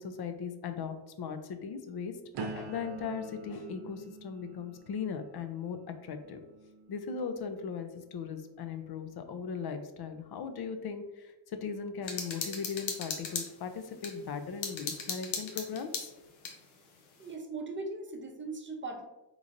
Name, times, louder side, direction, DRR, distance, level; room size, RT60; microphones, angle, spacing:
voice 1, 0.0-2.1 2.4-6.4 6.9-16.1, left 6 dB, 55° left, 8 dB, 0.5 m, -38 dB
sound 1, 2.3-8.2 8.7-9.2, right 3 dB, 65° right, 0.6 m, -46 dB
sound 2, 12.0-14.1 14.6-16.6, left 5 dB, 90° left, 0.7 m, -37 dB
voice 2, 17.2-19.0, right 3 dB, 25° right, 3 dB, 0.6 m, -39 dB
3.8 x 3.0 x 2.5 m, 0.99 s
cardioid pair, 90°, 46 cm